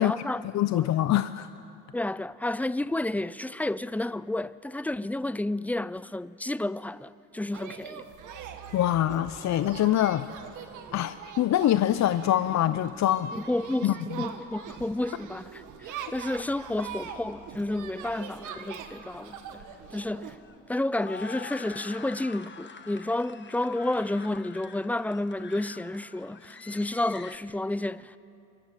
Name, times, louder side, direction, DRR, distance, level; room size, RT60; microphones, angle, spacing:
voice 1, 0.0-0.5 0.7-0.9 1.9-8.0 13.3-19.6 19.9-20.4 20.7-28.2, left 1 dB, 5° left, 0.5 m, -31 dB
voice 2, 0.5-1.5 8.7-10.3 10.9-13.3 13.8-13.9, left 12 dB, 65° left, 0.6 m, -24 dB
sound 1, 7.5-20.4, right 7 dB, 85° right, 1.9 m, -42 dB
sound 2, 19.4-27.4, left 5 dB, 35° left, 1.5 m, -46 dB
26.0 x 23.5 x 7.5 m
cardioid pair, 90°, 30 cm